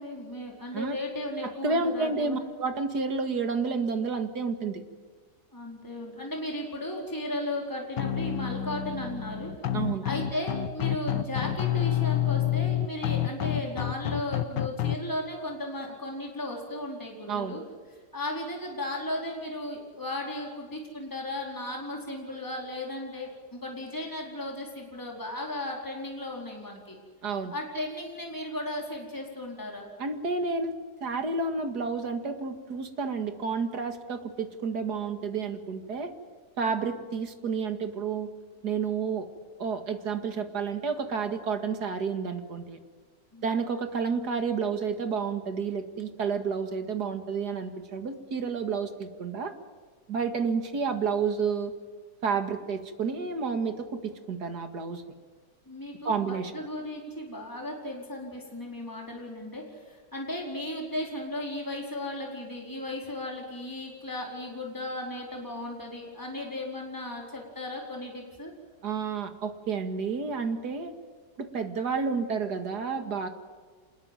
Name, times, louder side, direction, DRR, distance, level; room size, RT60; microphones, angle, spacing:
voice 1, 0.0-2.4 5.5-17.6 18.1-27.0 27.5-29.9 43.3-43.6 55.7-68.5, left 1 dB, 10° left, -1 dB, 4.6 m, -36 dB
voice 2, 1.4-4.8 9.7-10.0 17.3-17.6 27.2-27.5 30.0-30.7 31.0-36.1 36.6-38.3 38.6-39.3 39.6-42.8 43.4-49.5 50.1-51.7 52.2-55.0 56.0-56.5 68.8-70.9 71.4-73.3, right 5 dB, 65° right, 7 dB, 2.5 m, -30 dB
sound 1, 8.0-15.0, left 11 dB, 85° left, 1.7 m, -29 dB
27.0 x 21.0 x 9.2 m, 1.5 s
omnidirectional pair, 1.9 m